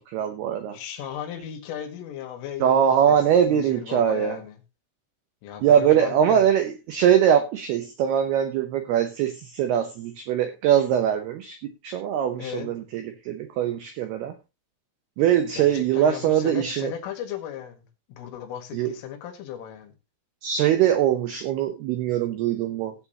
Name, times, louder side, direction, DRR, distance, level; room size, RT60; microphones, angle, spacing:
voice 1, 0.0-0.8 2.6-4.4 5.6-11.6 11.8-14.3 15.2-16.9 18.7-18.9 20.4-22.9, right 9 dB, 90° right, 2.2 m, -22 dB
voice 2, 0.7-3.2 3.5-4.6 5.4-6.5 12.4-12.7 15.5-19.9, left 10 dB, 75° left, 4.2 m, -36 dB
17.0 x 8.4 x 2.9 m
omnidirectional pair, 6.0 m